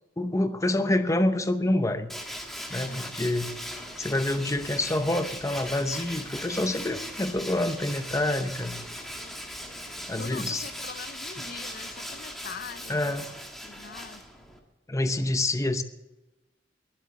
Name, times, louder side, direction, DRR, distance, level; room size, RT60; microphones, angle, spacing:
voice 1, 0.2-2.1 2.7-3.5 4.0-8.8 10.1-10.6 12.9-13.3 14.9-15.8, left 1 dB, 20° left, 0.8 m, -27 dB
Tools, 2.1-14.6, equal, ahead, 1.7 m, -39 dB
sound 1, 3.3-10.8, equal, 40° right, 1.8 m, -53 dB
voice 2, 10.2-13.2 13.6-14.2, left 5 dB, 55° left, 0.6 m, -42 dB
21.0 x 7.9 x 7.0 m
head